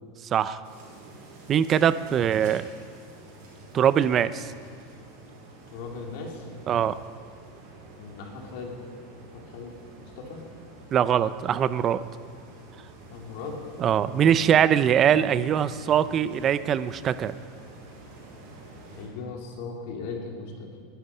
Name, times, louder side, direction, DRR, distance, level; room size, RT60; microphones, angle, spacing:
voice 1, 0.3-0.6 1.5-2.7 3.7-4.5 6.7-6.9 10.9-12.0 13.8-17.4, right 9 dB, 25° right, 15 dB, 0.5 m, -22 dB
sound 1, 0.6-19.1, right 2 dB, 60° right, 5.1 m, -48 dB
voice 2, 5.7-6.5 7.9-8.8 9.3-10.4 13.1-13.6 14.0-14.3 19.0-20.8, left 4 dB, 60° left, 1 dB, 3.0 m, -38 dB
20.5 x 11.5 x 5.5 m, 2.1 s
supercardioid pair, 165°, 0 cm